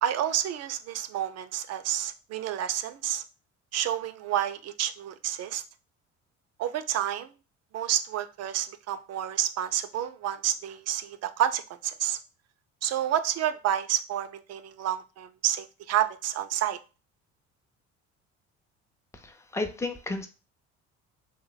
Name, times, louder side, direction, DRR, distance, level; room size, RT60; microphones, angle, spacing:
voice 1, 0.0-3.2 3.7-5.6 6.6-7.3 7.7-12.2 12.8-16.8, right 11 dB, 50° right, 12 dB, 0.5 m, -29 dB
voice 2, 19.1-20.3, left 2 dB, 10° left, 6 dB, 0.5 m, -33 dB
3.1 x 2.1 x 3.9 m, 0.32 s
supercardioid pair, 75°, 32 cm